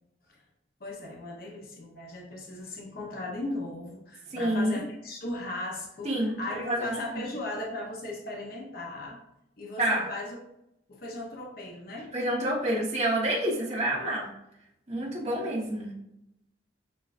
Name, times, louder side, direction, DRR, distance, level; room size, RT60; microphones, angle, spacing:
voice 1, 0.8-9.2 9.6-10.4 10.9-12.1, left 2 dB, 50° left, -1 dB, 0.6 m, -37 dB
voice 2, 4.3-4.8 6.0-7.2 9.8-10.0 12.1-14.3 14.9-15.9, right 1 dB, 35° right, -4 dB, 1.0 m, -28 dB
6.5 x 2.3 x 2.4 m, 0.81 s
head